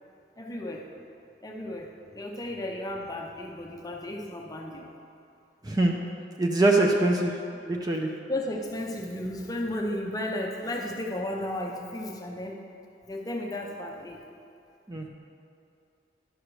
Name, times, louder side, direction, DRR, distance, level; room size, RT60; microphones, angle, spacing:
voice 1, 0.4-0.9 1.4-4.9 6.8-6.9 8.3-12.6 13.1-14.3, left 1 dB, 20° left, 0 dB, 0.6 m, -34 dB
voice 2, 5.6-6.0 6.4-7.3 7.6-8.1 14.9-15.1, right 2 dB, 20° right, 1 dB, 0.5 m, -23 dB
11.0 x 6.4 x 3.2 m, 2.5 s
head